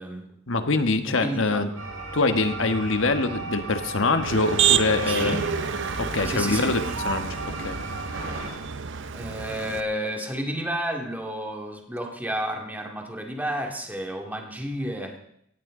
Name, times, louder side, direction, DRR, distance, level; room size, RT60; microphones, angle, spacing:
voice 1, 0.5-1.7 2.1-5.4 6.0-7.8, left 3 dB, 70° left, 8 dB, 1.4 m, -24 dB
voice 2, 1.1-1.8 5.1-5.4 6.2-6.8 9.1-15.2, equal, 10° right, 2 dB, 2.2 m, -31 dB
sound 1, 1.7-8.5, right 2 dB, 85° right, 5.4 m, -36 dB
Motor vehicle (road), 4.2-9.8, right 7 dB, 65° right, 0.8 m, -28 dB
18.0 x 15.0 x 3.8 m, 0.73 s
head